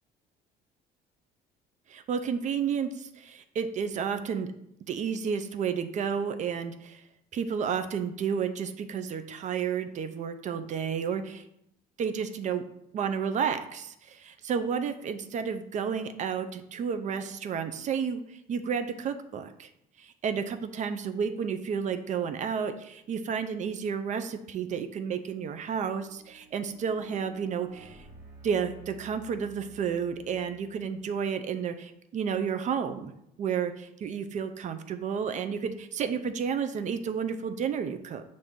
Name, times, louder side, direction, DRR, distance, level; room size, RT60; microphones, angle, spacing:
voice 1, 1.9-4.5 4.9-7.0 7.3-11.4 12.0-12.6 12.9-19.7 20.0-28.1 28.4-33.1 33.4-38.2, right 7 dB, 45° right, 9 dB, 0.4 m, -31 dB
sound 1, 24.8-31.3, right 3 dB, 65° right, 1.3 m, -53 dB
5.6 x 2.6 x 3.6 m, 0.77 s
cardioid pair, 110°, 17 cm